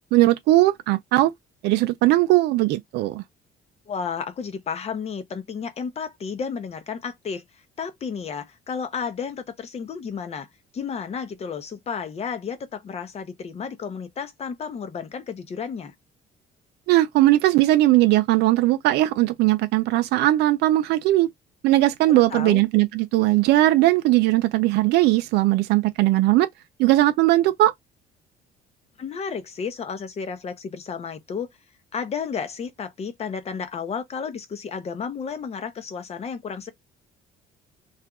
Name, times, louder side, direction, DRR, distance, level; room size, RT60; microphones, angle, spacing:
voice 1, 0.1-1.3 1.6-3.2 16.9-21.3 21.6-26.5 26.8-27.7, right 16 dB, 80° right, 0.4 m, -19 dB
voice 2, 3.9-7.4 7.8-10.5 10.7-15.9 22.1-22.6 29.0-31.5 31.9-36.7, left 6 dB, 40° left, 0.8 m, -32 dB
2.6 x 2.5 x 3.5 m
cardioid pair, 110°, 17 cm